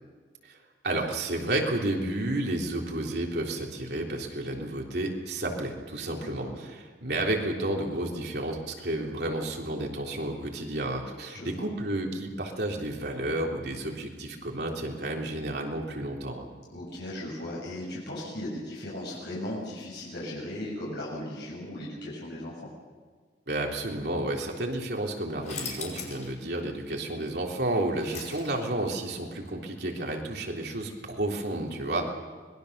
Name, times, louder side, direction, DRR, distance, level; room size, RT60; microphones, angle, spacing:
voice 1, 0.8-16.5 23.5-32.1, right 1 dB, 65° right, 0 dB, 3.5 m, -31 dB
voice 2, 6.2-6.6 11.3-11.7 16.7-22.6 31.8-32.0, left 1 dB, 70° left, -5 dB, 6.9 m, -37 dB
sound 1, 25.4-26.3 26.7-26.8 27.5-28.8, left 5 dB, 45° left, 5.2 m, -39 dB
25.5 x 21.0 x 6.8 m, 1.5 s
head